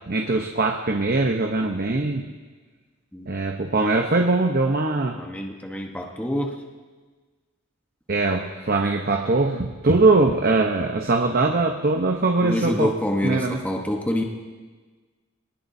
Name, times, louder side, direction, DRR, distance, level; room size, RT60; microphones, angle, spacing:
voice 1, 0.1-2.2 3.3-5.2 8.1-12.9 13.2-13.6, right 3 dB, 50° right, 3 dB, 0.9 m, -21 dB
voice 2, 5.1-6.6 12.4-14.2, equal, 10° left, 1 dB, 1.1 m, -26 dB
23.5 x 19.5 x 2.7 m, 1.4 s
head